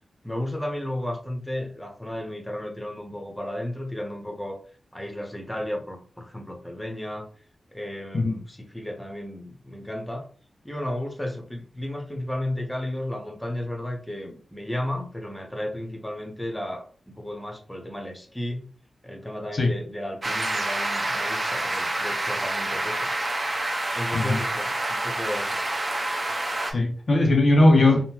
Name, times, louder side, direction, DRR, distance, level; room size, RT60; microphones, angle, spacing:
voice 1, 0.2-4.6 4.9-7.3 7.7-10.3 10.6-18.7 19.0-23.1 23.9-25.6, left 1 dB, 5° left, 0.8 m, -33 dB
sound 1, 20.2-26.7, right 1 dB, 30° right, 0.7 m, -28 dB
voice 2, 26.7-28.1, left 2 dB, 50° left, 0.5 m, -19 dB
3.5 x 2.0 x 2.8 m
wide cardioid pair, 110°, 0 cm